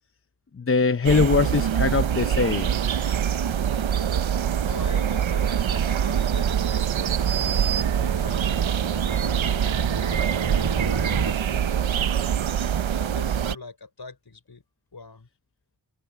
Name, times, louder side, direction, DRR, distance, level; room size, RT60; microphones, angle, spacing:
voice 1, 0.6-2.7, left 4 dB, 30° left, 0.7 m, -22 dB
sound 1, 1.0-13.5, right 9 dB, 90° right, 0.9 m, -24 dB
sound 2, 2.6-11.3, right 4 dB, 60° right, 5.9 m, -35 dB
voice 2, 4.6-11.9 12.9-14.6 14.9-15.3, left 4 dB, 55° left, 5.3 m, -43 dB
cardioid pair, 40°, 46 cm